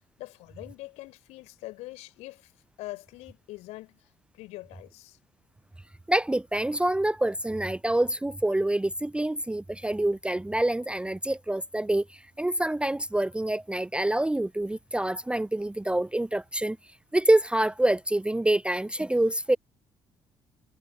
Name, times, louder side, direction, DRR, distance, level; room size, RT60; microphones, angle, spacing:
voice 1, 0.0-2.5 2.8-4.0 4.3-5.2, left 19 dB, 65° left, 4.4 m, -43 dB
voice 2, 6.1-16.8 17.1-19.6, right 1 dB, 10° right, 0.6 m, -26 dB
figure-of-eight pair, 45°, 12 cm